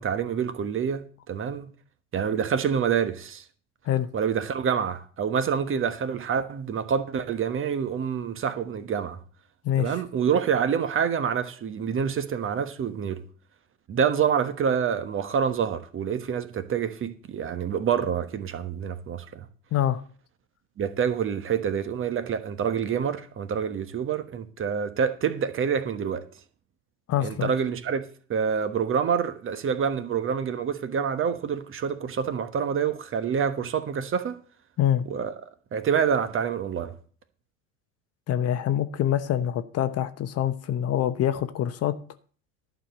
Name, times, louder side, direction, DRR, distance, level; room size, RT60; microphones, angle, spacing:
voice 1, 0.0-1.7 2.1-3.4 4.1-9.2 9.8-13.2 13.9-19.5 20.8-26.2 27.2-28.0 28.3-34.4 35.1-35.3 35.7-36.9, right 7 dB, 30° right, 1.2 m, -27 dB
voice 2, 19.7-20.0 27.1-27.5 34.8-35.0 38.3-41.9, left 11 dB, 40° left, 0.9 m, -25 dB
11.5 x 5.1 x 7.7 m
hypercardioid pair, 75°, 40 cm